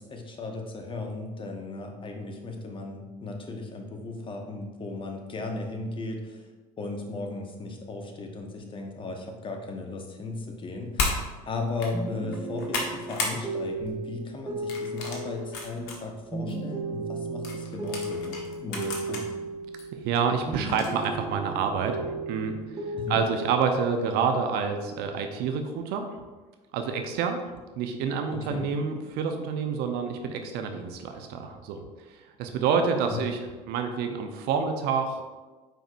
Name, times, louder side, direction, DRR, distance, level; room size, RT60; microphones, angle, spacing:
voice 1, 0.0-6.4 6.8-11.2 11.5-19.4 22.9-23.2 28.3-28.7 33.1-33.2, left 3 dB, 25° left, 3 dB, 1.1 m, -36 dB
sound 1, 11.0-11.2 11.7-11.9 12.3-13.4 13.8-14.0 14.7-16.0 16.5-16.6 17.4-19.2 19.8-19.9 20.7-21.1, left 3 dB, 60° left, 1.4 m, -32 dB
sound 2, 11.9-20.2 20.5-23.6, right 2 dB, 15° right, 1.4 m, -35 dB
voice 2, 19.9-22.6 23.1-26.1 26.7-27.4 27.8-31.8 32.4-33.4 33.7-35.2, right 6 dB, 50° right, 5 dB, 0.8 m, -28 dB
9.1 x 5.0 x 2.6 m, 1.3 s
figure-of-eight pair, 70°, 21 cm